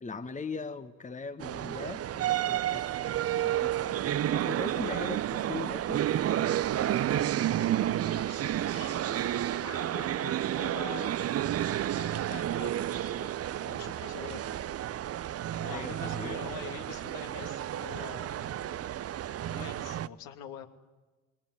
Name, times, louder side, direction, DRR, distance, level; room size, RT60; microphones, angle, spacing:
voice 1, 0.0-3.0 3.3-6.0 15.7-16.4, left 4 dB, 20° left, 10 dB, 1.5 m, -40 dB
sound 1, 1.4-20.1, right 12 dB, 35° right, 0.8 m, -31 dB
voice 2, 7.4-11.2 11.9-13.3 13.6-14.7 15.5-18.8 19.5-20.7, left 9 dB, 60° left, 6 dB, 2.8 m, -46 dB
28.0 x 22.5 x 9.5 m, 1.2 s
figure-of-eight pair, 60°, 41 cm